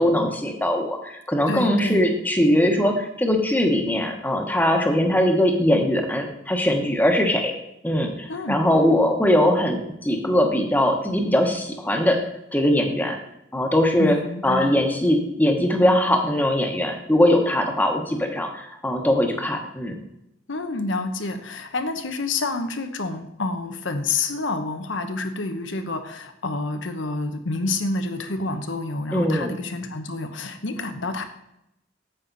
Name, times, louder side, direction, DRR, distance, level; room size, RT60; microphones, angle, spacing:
voice 1, 0.0-7.5 7.8-12.2 12.5-13.2 13.5-14.2 14.4-20.0 29.1-29.5, left 1 dB, 10° left, 3 dB, 1.1 m, -21 dB
voice 2, 1.5-2.1 8.3-8.6 14.0-14.8 20.5-31.2, left 3 dB, 90° left, 7 dB, 1.0 m, -28 dB
9.0 x 7.6 x 4.0 m, 0.82 s
head